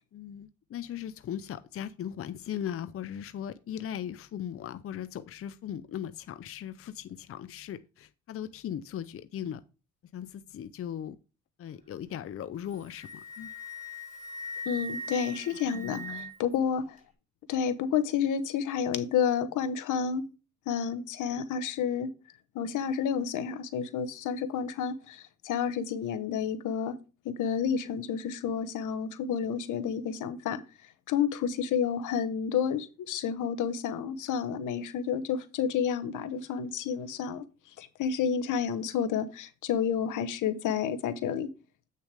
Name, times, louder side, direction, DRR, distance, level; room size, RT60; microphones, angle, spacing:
voice 1, 0.1-9.6 10.1-11.2 11.6-13.5 15.7-16.3, left 10 dB, 50° left, 0.6 m, -38 dB
Wind instrument woodwind instrument, 12.6-16.5, equal, 25° right, 3.7 m, -40 dB
voice 2, 14.7-17.0 17.5-20.3 20.7-22.1 22.5-27.0 27.2-37.4 37.8-41.5, left 7 dB, 85° left, 1.0 m, -30 dB
8.2 x 6.4 x 3.4 m
cardioid pair, 90°, 30 cm